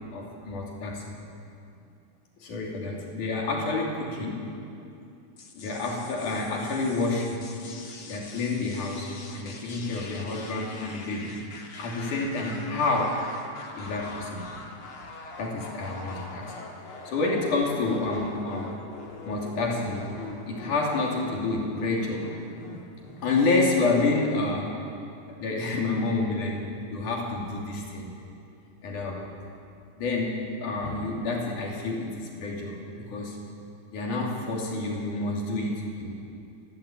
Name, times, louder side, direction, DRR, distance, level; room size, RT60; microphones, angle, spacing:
voice 1, 0.1-1.2 2.4-4.6 5.5-7.5 8.1-11.4 11.8-13.2 13.8-14.5 15.4-18.8 19.2-20.1 20.5-22.3 23.2-24.9 25.4-26.6 26.9-28.1 28.8-29.3 30.0-33.4 33.9-36.1, left 3 dB, 85° left, -2 dB, 4.5 m, -29 dB
sound 1, 5.4-23.8, left 3 dB, 50° left, 2.6 m, -44 dB
29.0 x 12.5 x 8.6 m, 2.6 s
omnidirectional pair, 3.5 m